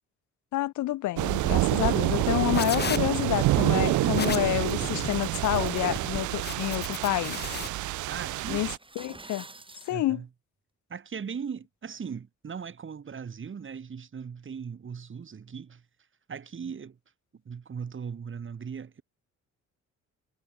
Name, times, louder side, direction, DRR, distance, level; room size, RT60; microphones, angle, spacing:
voice 1, 0.5-7.4 8.5-8.7 9.0-9.5 9.9-10.2, left 16 dB, 70° left, 0.6 m, -28 dB
sound 1, 1.2-8.8, right 17 dB, 75° right, 0.5 m, -27 dB
sound 2, 2.1-7.7, left 6 dB, 35° left, 1.2 m, -35 dB
voice 2, 8.1-8.7 9.9-10.3 10.9-15.9 16.3-17.0 17.3-19.0, right 6 dB, 40° right, 3.3 m, -38 dB
sound 3, 8.7-10.0, right 2 dB, 15° right, 4.3 m, -46 dB
cardioid pair, 90°, 30 cm